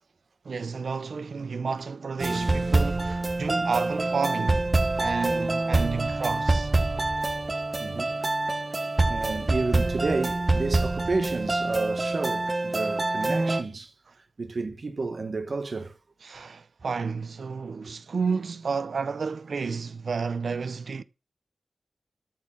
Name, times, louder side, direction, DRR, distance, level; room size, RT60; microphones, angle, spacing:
voice 1, 0.4-6.7 16.2-21.0, right 5 dB, 80° right, 0.6 m, -31 dB
sound 1, 2.2-13.6, right 2 dB, 35° right, 1.0 m, -26 dB
voice 2, 7.8-8.1 9.1-13.9 14.4-16.0 17.8-17.9, right 3 dB, 60° right, 1.4 m, -31 dB
13.0 x 4.7 x 7.6 m
wide cardioid pair, 85°, 0 cm